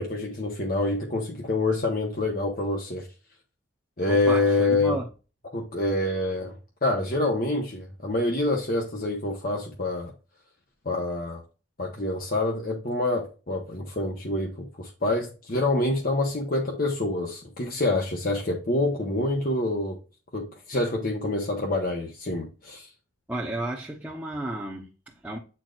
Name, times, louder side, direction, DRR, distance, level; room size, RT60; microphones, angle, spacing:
voice 1, 0.0-3.1 4.0-5.0 5.5-6.5 6.8-10.1 10.8-11.4 11.8-20.0 20.3-22.9, left 2 dB, 50° left, 1.1 m, -26 dB
voice 2, 4.1-5.1 23.3-25.4, right 1 dB, 5° right, 0.9 m, -33 dB
8.9 x 4.5 x 2.5 m
head